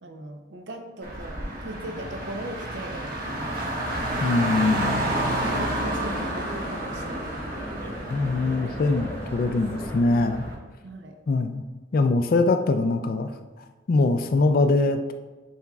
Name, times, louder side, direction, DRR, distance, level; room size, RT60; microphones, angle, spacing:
voice 1, 0.0-3.6 5.2-7.2 10.8-11.2, right 1 dB, 75° right, 4 dB, 0.6 m, -38 dB
Car, 1.0-10.5, right 1 dB, 55° right, 1.3 m, -30 dB
voice 2, 4.2-5.0 8.1-10.5 11.3-11.6 11.9-13.3 13.9-15.1, left 3 dB, 50° left, 7 dB, 0.3 m, -22 dB
sound 1, 4.4-10.1, equal, 10° left, 0.7 m, -39 dB
9.4 x 4.3 x 2.3 m, 1.2 s
head